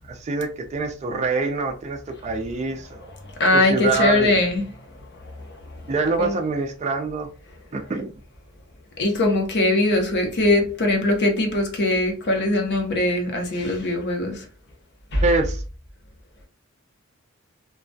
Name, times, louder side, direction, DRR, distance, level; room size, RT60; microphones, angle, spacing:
voice 1, 0.0-3.1 3.5-4.4 5.9-7.3 7.7-8.1 15.2-15.6, right 3 dB, 30° right, 0.3 m, -25 dB
voice 2, 3.4-4.7 5.5-5.6 6.2-6.4 9.0-14.4 15.1-15.2, left 2 dB, 50° left, 0.6 m, -21 dB
2.2 x 2.2 x 2.5 m
head